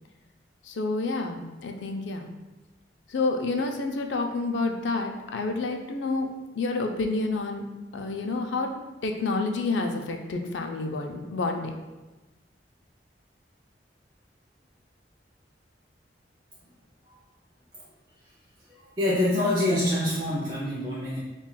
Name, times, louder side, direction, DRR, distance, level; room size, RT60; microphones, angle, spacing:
voice 1, 0.6-2.3 3.1-6.3 6.6-7.7 7.9-8.7 9.0-11.8, left 3 dB, 85° left, 3 dB, 0.4 m, -29 dB
voice 2, 18.7-21.2, left 1 dB, 25° right, -7 dB, 0.5 m, -26 dB
5.4 x 2.3 x 2.2 m, 1.2 s
head